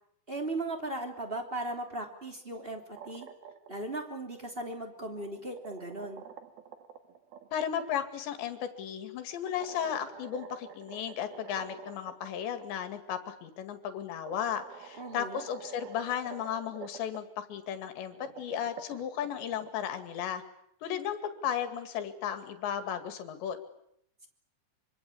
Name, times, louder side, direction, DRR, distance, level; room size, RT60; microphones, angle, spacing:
voice 1, 0.3-3.3 3.7-6.2 15.0-15.4, right 2 dB, 15° right, 4 dB, 2.5 m, -37 dB
sound 1, 2.7-3.9 5.0-7.9 9.5-12.3 12.6-12.7 13.7-13.8 14.3-17.2 18.0-19.7, right 8 dB, 60° right, 3.3 m, -48 dB
voice 2, 7.5-20.4 20.8-23.6, left 9 dB, 70° left, 9 dB, 4.3 m, -35 dB
25.0 x 25.0 x 8.6 m, 0.74 s
omnidirectional pair, 5.3 m